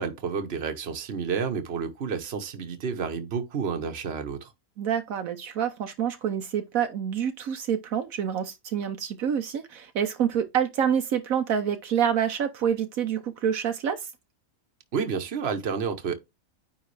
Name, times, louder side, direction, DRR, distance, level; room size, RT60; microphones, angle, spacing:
voice 1, 0.0-4.5 14.9-16.1, right 6 dB, 50° right, 1.3 m, -30 dB
voice 2, 4.8-14.1, right 8 dB, 75° right, 1.2 m, -27 dB
9.5 x 3.6 x 3.3 m
omnidirectional pair, 1.5 m